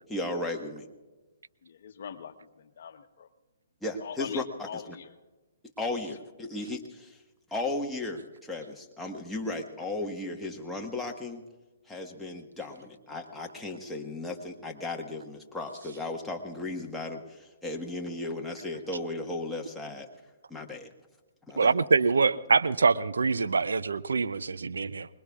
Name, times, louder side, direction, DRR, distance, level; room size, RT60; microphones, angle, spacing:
voice 1, 0.1-0.9 3.8-5.0 5.8-7.2 7.5-11.4 11.9-20.1 20.5-20.9 21.5-21.7, left 2 dB, 5° left, 1.4 m, -35 dB
voice 2, 1.6-3.3 4.0-5.1, left 7 dB, 60° left, 1.0 m, -42 dB
voice 3, 21.6-25.1, right 4 dB, 80° right, 0.5 m, -25 dB
24.5 x 21.0 x 2.4 m
hypercardioid pair, 135°, 0 cm